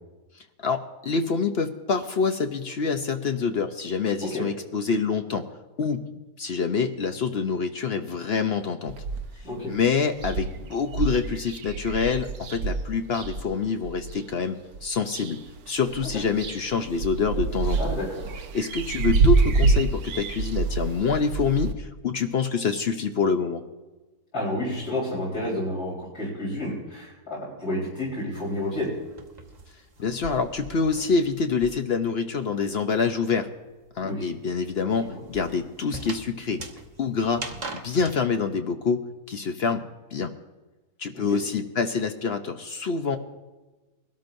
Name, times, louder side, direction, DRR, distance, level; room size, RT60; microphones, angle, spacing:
voice 1, 0.6-5.4 5.8-6.0 6.4-8.9 9.7-15.4 15.7-17.8 18.5-23.6 30.0-33.5 34.0-36.6 37.0-37.4 37.7-39.8 40.1-40.3 41.0-43.2, left 5 dB, 55° left, 7 dB, 0.7 m, -26 dB
sound 1, 8.9-9.5 9.8-9.9 10.2-14.2 14.7-15.6 15.9-21.7, right 4 dB, 70° right, 1.3 m, -26 dB
voice 2, 17.8-18.4 24.3-28.9 34.0-34.2 35.0-35.2 41.1-41.4, left 1 dB, 70° left, -8 dB, 4.7 m, -30 dB
sound 2, 28.3-32.1 32.4-38.2, right 2 dB, 30° right, 1.0 m, -42 dB
22.5 x 13.0 x 2.6 m, 1.2 s
omnidirectional pair, 1.7 m